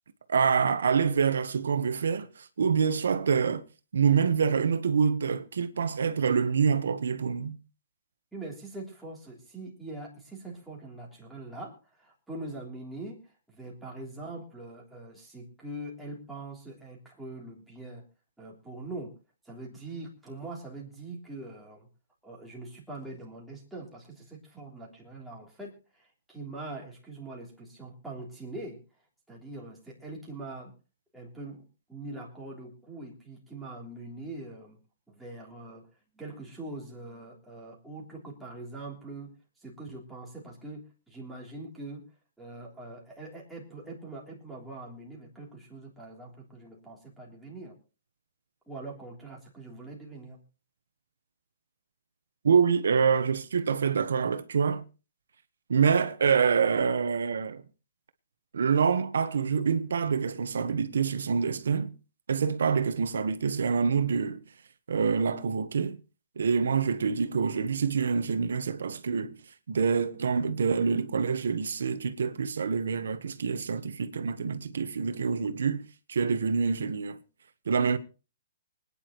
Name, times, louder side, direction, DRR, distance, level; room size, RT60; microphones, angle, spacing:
voice 1, 0.3-3.6 3.9-7.6 52.4-54.8 55.7-57.6 58.5-61.9 62.3-64.4 64.9-66.0 66.4-69.4 69.7-75.8 76.1-77.2 77.7-78.0, right 6 dB, 85° right, 1.2 m, -26 dB
voice 2, 8.3-18.0 18.4-19.2 19.4-21.9 22.2-28.8 29.3-30.7 31.1-31.6 31.9-34.8 35.1-35.9 36.1-39.3 39.6-42.1 42.4-47.8 48.7-50.4, right 2 dB, 5° right, 3.2 m, -43 dB
24.5 x 10.0 x 3.1 m
hypercardioid pair, 180°, 0 cm